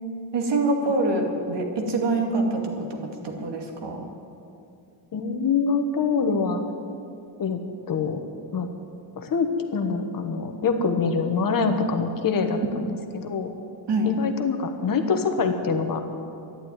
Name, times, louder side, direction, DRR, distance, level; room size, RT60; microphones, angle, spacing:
voice 1, 0.3-2.7 3.2-4.1 12.8-12.9 13.9-14.1, right 2 dB, 65° right, 2 dB, 2.3 m, -25 dB
voice 2, 5.1-6.6 7.4-7.6 7.9-8.2 8.5-8.7 9.2-13.5 14.2-16.0, left 5 dB, 50° left, 6 dB, 1.2 m, -25 dB
12.5 x 11.0 x 9.3 m, 2.5 s
wide cardioid pair, 175°, 45 cm